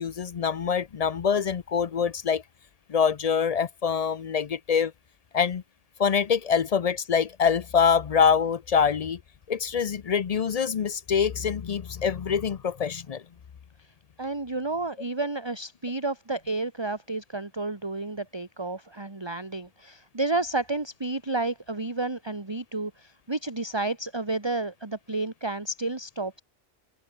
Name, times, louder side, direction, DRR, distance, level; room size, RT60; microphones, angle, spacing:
voice 1, 0.0-2.4 2.9-4.9 5.3-5.6 6.0-9.2 9.5-13.2, left 6 dB, 50° left, 0.4 m, -25 dB
voice 2, 14.2-26.4, right 2 dB, 20° right, 1.8 m, -31 dB
open air
omnidirectional pair, 1.3 m